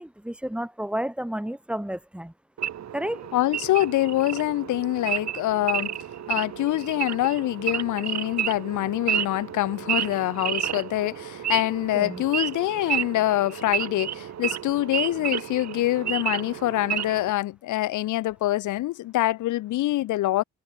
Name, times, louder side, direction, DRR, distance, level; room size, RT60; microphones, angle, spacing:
voice 1, 0.0-2.3 2.9-3.3 11.9-12.2, equal, 5° right, 3.6 m, -31 dB
Wild animals / Idling, 2.6-17.3, right 10 dB, 60° right, 2.8 m, -31 dB
voice 2, 3.3-6.0 6.3-20.4, left 16 dB, 80° left, 0.9 m, -25 dB
cardioid pair, 90°, 30 cm